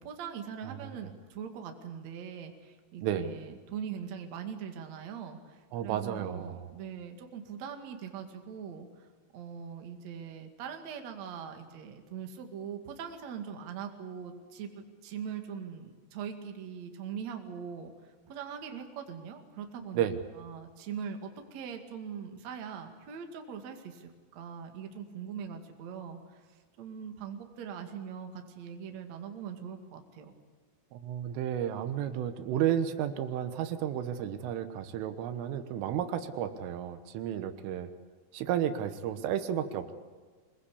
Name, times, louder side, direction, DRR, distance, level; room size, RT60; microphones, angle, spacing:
voice 1, 0.0-9.1 9.3-20.0 20.4-26.4 26.8-30.3, right 7 dB, 45° right, 5 dB, 2.6 m, -41 dB
voice 2, 5.7-6.7 19.9-20.2 30.9-37.9 38.3-39.9, right 10 dB, 80° right, 10 dB, 3.7 m, -32 dB
25.0 x 21.0 x 8.5 m, 1.5 s
omnidirectional pair, 5.7 m